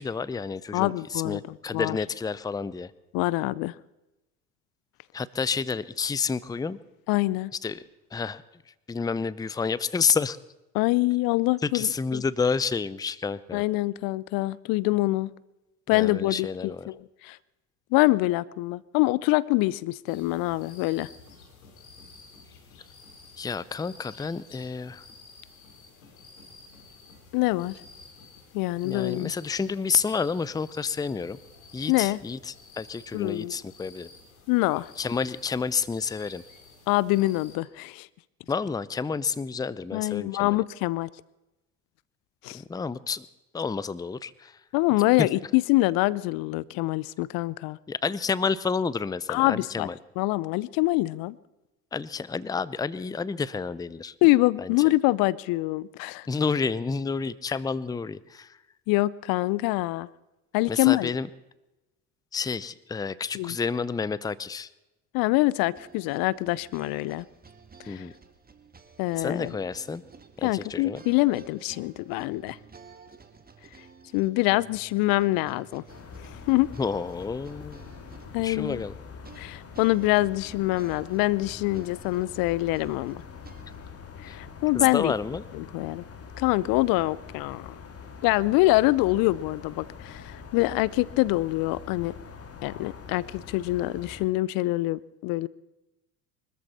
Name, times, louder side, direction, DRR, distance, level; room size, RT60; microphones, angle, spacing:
voice 1, 0.0-2.9 5.1-6.8 7.6-7.8 8.1-8.4 8.9-10.4 11.7-13.6 15.9-16.9 23.4-25.0 28.8-31.4 31.7-32.4 32.7-34.1 35.0-36.4 38.5-40.6 42.5-43.2 43.5-44.5 45.2-45.3 47.9-49.9 51.9-54.1 54.6-54.7 56.3-58.5 60.7-61.3 62.3-64.7 67.9-68.1 69.2-70.0 70.4-71.0 76.8-77.8 78.4-78.9 84.3-84.4 84.7-85.4, left 5 dB, 10° left, 19 dB, 0.6 m, -29 dB
voice 2, 0.7-2.0 3.1-3.7 7.1-7.5 10.7-12.2 13.5-15.3 15.9-17.4 17.9-21.1 27.3-27.8 28.5-29.3 31.9-32.2 33.1-33.5 34.5-34.9 36.9-38.1 39.9-41.1 42.4-42.6 44.7-47.8 49.3-49.9 50.2-51.4 54.2-56.3 58.9-60.1 60.5-61.1 63.3-63.6 65.1-67.3 67.8-68.1 69.0-69.6 70.4-72.6 74.1-75.8 76.2-76.7 78.3-78.8 79.4-83.2 84.2-85.1 85.5-86.0 86.4-87.8 88.2-92.1 92.6-95.5, left 19 dB, 55° left, 22 dB, 0.7 m, -25 dB
sound 1, 20.1-37.6, left 4 dB, 85° left, 3.1 m, -52 dB
sound 2, 65.8-83.9, right 5 dB, 20° right, 2.0 m, -52 dB
sound 3, 75.9-94.3, left 6 dB, 35° left, 2.3 m, -44 dB
24.5 x 14.0 x 4.3 m, 0.98 s
hypercardioid pair, 65°, 41 cm